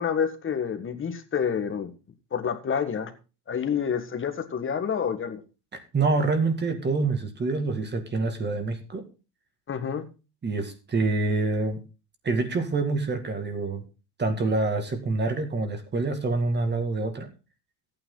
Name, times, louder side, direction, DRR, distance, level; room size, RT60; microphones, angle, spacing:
voice 1, 0.0-1.9 2.3-3.1 3.5-5.4 9.7-10.1, left 7 dB, 25° left, 8 dB, 1.7 m, -28 dB
voice 2, 5.7-9.0 10.4-11.8 12.2-13.8 14.2-17.3, right 3 dB, 20° right, 7 dB, 2.1 m, -26 dB
13.5 x 9.2 x 3.9 m, 0.32 s
supercardioid pair, 115°, 47 cm